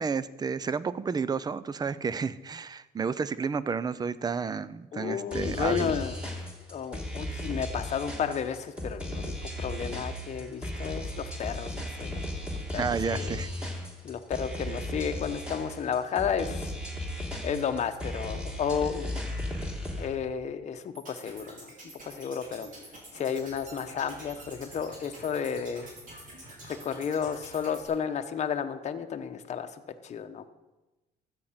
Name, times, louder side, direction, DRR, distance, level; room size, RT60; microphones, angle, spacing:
voice 1, 0.0-5.9 12.8-13.5, right 5 dB, 25° right, 17 dB, 0.5 m, -31 dB
voice 2, 4.9-6.4 6.7-12.2 12.5-12.8 13.1-13.4 14.0-16.7 17.4-19.3 19.9-21.7 22.0-22.7 23.1-25.9 26.7-30.4, left 7 dB, 40° left, 6 dB, 0.9 m, -32 dB
sound 1, 5.3-20.1, left 1 dB, 5° right, 2.8 m, -36 dB
sound 2, 20.9-27.9, right 1 dB, 50° right, 4.7 m, -47 dB
13.5 x 7.9 x 5.8 m, 1.1 s
cardioid pair, 110°, 17 cm